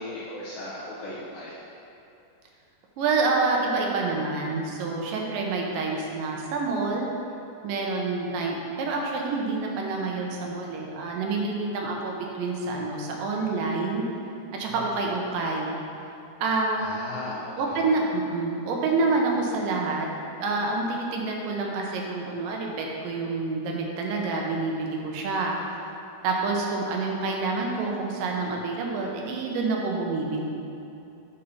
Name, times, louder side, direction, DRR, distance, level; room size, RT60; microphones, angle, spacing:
voice 1, 0.0-1.6 14.6-15.1 16.7-17.9, left 2 dB, 70° left, -8 dB, 2.1 m, -37 dB
voice 2, 3.0-7.1 7.6-14.0 14.5-15.8 16.4-17.0 17.6-20.1 20.4-25.6 26.2-30.4, right 3 dB, 80° right, 0 dB, 2.6 m, -27 dB
8.3 x 5.7 x 4.1 m, 2.7 s
omnidirectional pair, 3.9 m